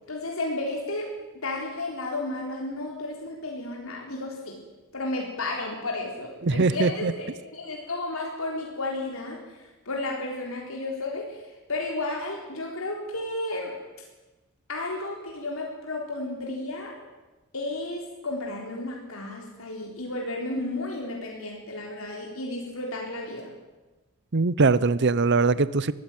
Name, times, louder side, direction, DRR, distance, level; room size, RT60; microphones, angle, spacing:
voice 1, 0.1-1.1 1.4-4.6 4.9-9.4 9.9-11.4 11.7-13.7 14.7-16.9 17.5-23.5, left 2 dB, 80° left, 4.0 m, -32 dB
voice 2, 6.4-7.1 24.3-25.9, right 3 dB, 55° right, 0.7 m, -21 dB
23.0 x 16.0 x 9.1 m
head